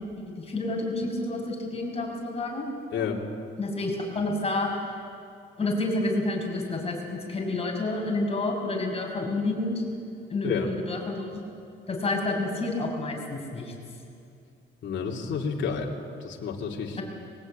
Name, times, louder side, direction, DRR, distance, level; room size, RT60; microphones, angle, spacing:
voice 1, 0.4-2.7 3.6-4.7 5.6-9.8 10.3-11.3 11.9-13.7 17.0-17.1, left 2 dB, 30° left, 1 dB, 6.2 m, -29 dB
voice 2, 14.8-15.9 16.2-17.0, left 6 dB, 65° left, -1 dB, 2.9 m, -30 dB
22.5 x 18.5 x 8.9 m, 2.5 s
cardioid pair, 90°, 20 cm